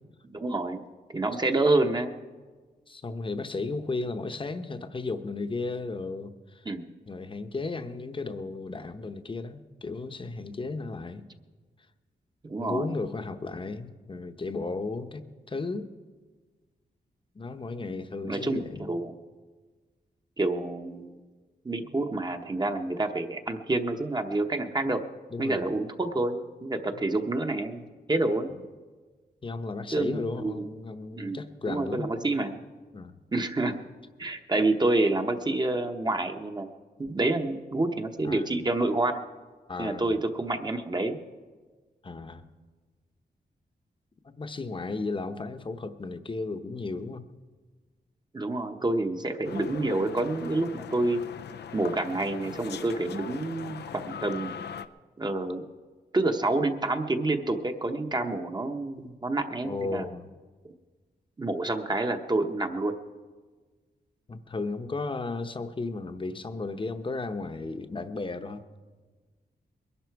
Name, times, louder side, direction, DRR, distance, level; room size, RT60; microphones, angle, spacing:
voice 1, 0.3-0.8 1.1-2.1 6.6-6.8 12.4-12.9 18.3-19.1 20.4-21.2 21.6-25.0 25.4-27.8 28.1-28.5 29.9-30.6 31.1-31.4 31.6-32.6 33.3-33.8 34.2-36.7 37.0-39.2 39.8-41.2 48.3-51.2 51.7-53.8 54.1-54.5 55.2-55.6 56.1-60.0 61.4-62.9, right 2 dB, 25° right, 5 dB, 0.9 m, -28 dB
voice 2, 2.9-6.6 7.1-11.3 12.6-15.9 17.3-18.9 25.3-25.7 26.9-27.2 29.4-32.3 32.9-33.2 38.2-38.5 39.7-40.2 42.0-42.5 44.2-47.3 59.6-60.3 64.3-68.6, left 3 dB, 30° left, 9 dB, 0.9 m, -34 dB
sound 1, 49.4-54.9, left 8 dB, 90° left, 0.5 m, -40 dB
21.5 x 11.5 x 4.7 m, 1.4 s
wide cardioid pair, 105°, 17 cm